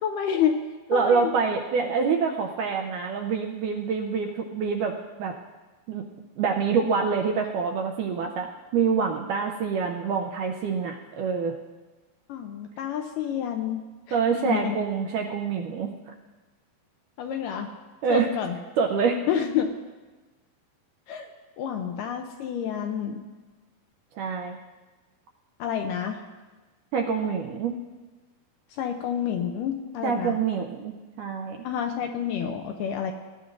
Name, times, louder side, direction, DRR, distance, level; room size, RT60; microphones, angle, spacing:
voice 1, 0.0-0.6 0.9-1.3 12.3-14.2 14.4-14.8 17.2-17.7 18.1-18.6 19.3-19.8 21.1-21.3 21.6-23.2 25.6-26.2 28.8-30.4 31.6-33.1, left 8 dB, 80° left, 5 dB, 2.0 m, -29 dB
voice 2, 0.9-5.3 5.9-6.0 6.4-11.6 14.1-15.9 18.0-18.3 18.8-19.2 24.2-24.6 26.9-27.7 30.0-31.6, right 5 dB, 80° right, 2 dB, 1.9 m, -26 dB
19.5 x 11.0 x 2.6 m, 1.2 s
omnidirectional pair, 4.3 m